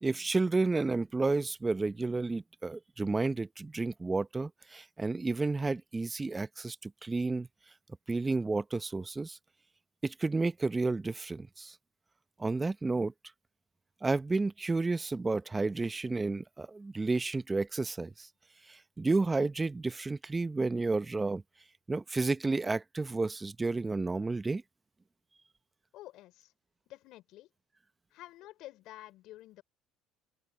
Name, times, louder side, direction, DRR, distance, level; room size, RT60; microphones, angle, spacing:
voice 1, 0.0-7.5 8.1-9.4 10.0-11.7 12.4-13.1 14.0-18.3 18.7-21.4 21.9-24.6, right 3 dB, 20° right, 1.0 m, -31 dB
voice 2, 25.9-26.5 26.9-27.5 28.1-29.6, left 16 dB, 65° left, 4.1 m, -50 dB
open air
hypercardioid pair, 70°, 0 cm